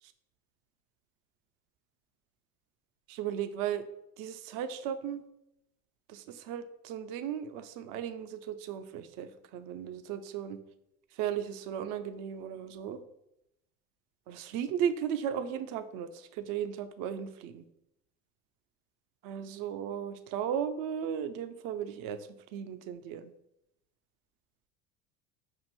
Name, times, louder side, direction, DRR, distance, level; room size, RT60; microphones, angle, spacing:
voice 1, 3.1-3.8 4.2-5.2 6.1-10.6 11.2-13.0 14.3-17.6 19.2-23.3, right 9 dB, 55° right, 10 dB, 0.5 m, -36 dB
5.2 x 2.4 x 3.0 m, 0.84 s
hypercardioid pair, 85°, 41 cm